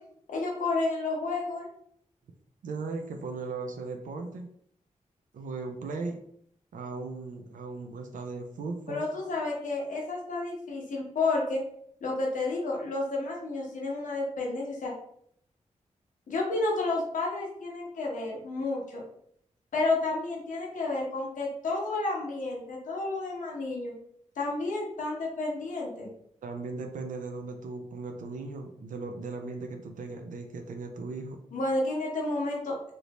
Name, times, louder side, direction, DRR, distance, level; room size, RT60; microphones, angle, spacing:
voice 1, 0.3-1.7 8.9-11.6 12.0-14.9 16.3-19.0 19.7-23.9 24.4-26.1 31.5-32.8, left 2 dB, 85° left, -3 dB, 1.0 m, -31 dB
voice 2, 2.6-4.5 5.3-6.2 6.7-9.1 26.4-31.4, right 3 dB, 90° right, 4 dB, 0.4 m, -37 dB
3.3 x 2.6 x 2.9 m, 0.68 s
cardioid pair, 70°, 13 cm